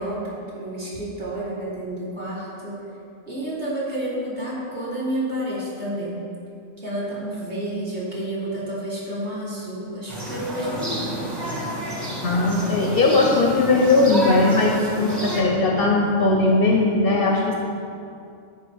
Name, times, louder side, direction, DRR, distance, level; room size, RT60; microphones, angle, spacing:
voice 1, 0.0-2.8 3.3-6.2 6.8-11.2, right 1 dB, 40° right, -7 dB, 1.6 m, -30 dB
sound 1, 10.1-15.4, right 1 dB, 20° right, 1.2 m, -30 dB
voice 2, 12.2-17.6, left 2 dB, 60° left, -1 dB, 0.7 m, -19 dB
9.2 x 3.9 x 3.4 m, 2.5 s
omnidirectional pair, 1.3 m